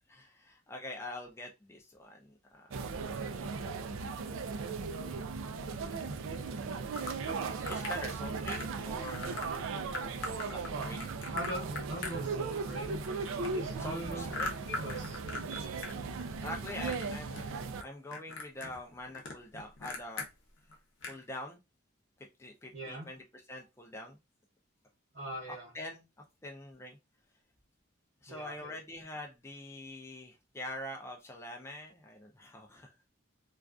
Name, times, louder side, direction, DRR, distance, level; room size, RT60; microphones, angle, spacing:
voice 1, 0.1-4.0 4.6-4.9 7.5-9.5 10.5-11.1 13.8-14.5 16.4-17.4 17.8-20.3 21.0-21.6 22.4-24.2 25.7-26.0 26.4-27.0 28.2-32.9, left 1 dB, 15° left, 1 dB, 0.3 m, -44 dB
sound 1, 2.7-17.8, right 4 dB, 85° right, 0.3 m, -37 dB
sound 2, 7.0-8.0 8.5-8.8 9.0-9.5 9.9-12.7 13.0-15.9 16.2-17.1 17.3-17.8 18.1-20.3 20.7-20.8 21.0-21.2, left 3 dB, 70° left, 0.6 m, -40 dB
voice 2, 11.3-13.1 13.4-14.3 14.7-15.2 22.7-23.1 25.1-25.7 28.3-28.8, right 1 dB, 60° right, -5 dB, 0.8 m, -41 dB
2.4 x 2.3 x 2.3 m, 0.24 s
head